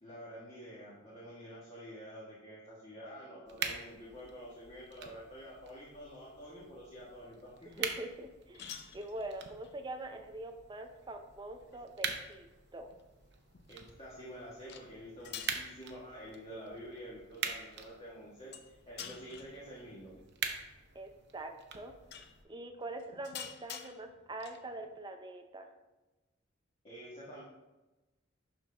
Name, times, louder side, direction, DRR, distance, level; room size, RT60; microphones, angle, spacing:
voice 1, 0.0-7.8 13.7-20.1 26.8-27.4, equal, 30° left, -7 dB, 1.5 m, -48 dB
sound 1, 3.5-22.4, right 6 dB, 60° right, 0.7 m, -45 dB
sound 2, 7.2-25.0, left 8 dB, 55° left, 0.6 m, -53 dB
voice 2, 7.8-12.5 12.7-12.9 20.9-21.9 22.5-25.7, right 1 dB, 25° right, 5 dB, 0.5 m, -44 dB
11.5 x 3.9 x 3.3 m, 1.1 s
head